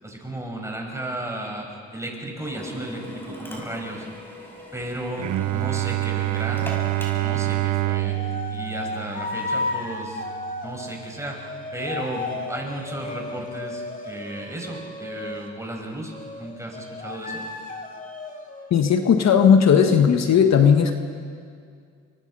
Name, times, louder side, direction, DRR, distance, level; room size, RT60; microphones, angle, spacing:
voice 1, 0.0-4.1 4.7-6.7 7.1-17.4, right 1 dB, 10° right, 1 dB, 5.8 m, -34 dB
sound 1, 2.4-5.1 6.1-15.6 16.1-18.7, left 2 dB, 25° left, 2.9 m, -35 dB
Drill, 2.4-7.5, equal, 5° left, 6.7 m, -41 dB
Bowed string instrument, 5.2-10.9, right 18 dB, 70° right, 0.7 m, -27 dB
voice 2, 18.7-20.9, left 7 dB, 60° left, 6 dB, 1.5 m, -16 dB
28.0 x 24.0 x 5.6 m, 2.2 s
cardioid pair, 90°, 30 cm